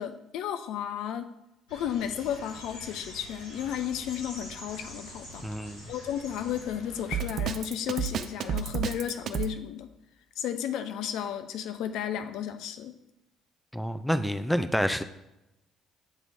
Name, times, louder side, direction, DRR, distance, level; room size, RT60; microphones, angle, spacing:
voice 1, 0.0-1.3 1.7-5.5 5.9-9.9 10.4-13.0, left 9 dB, 65° left, 0.4 m, -33 dB
sound 1, 1.7-7.3, left 1 dB, 85° left, 2.2 m, -45 dB
voice 2, 5.4-5.9 13.7-15.0, equal, 5° left, 0.4 m, -28 dB
Drum kit, 7.1-9.5, right 8 dB, 55° right, 0.4 m, -30 dB
8.1 x 3.0 x 4.1 m
hypercardioid pair, 50°, 0 cm